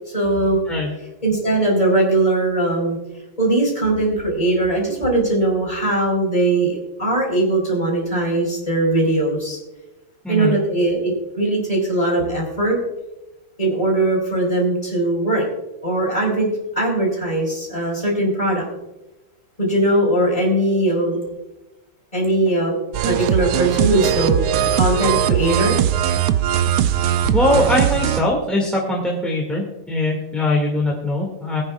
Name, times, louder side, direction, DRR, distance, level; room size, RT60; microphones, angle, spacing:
voice 1, 0.1-0.6 1.2-3.0 3.4-9.6 10.3-12.8 13.6-15.5 15.8-16.5 16.8-18.6 19.6-21.2 22.1-22.7 23.1-24.4 24.7-25.8, right 2 dB, 15° left, -2 dB, 4.4 m, -20 dB
sound 1, 22.9-28.2, right 10 dB, 75° right, 0.9 m, -20 dB
voice 2, 27.3-31.6, left 1 dB, ahead, -3 dB, 1.8 m, -21 dB
22.5 x 9.6 x 2.4 m, 0.99 s
omnidirectional pair, 2.3 m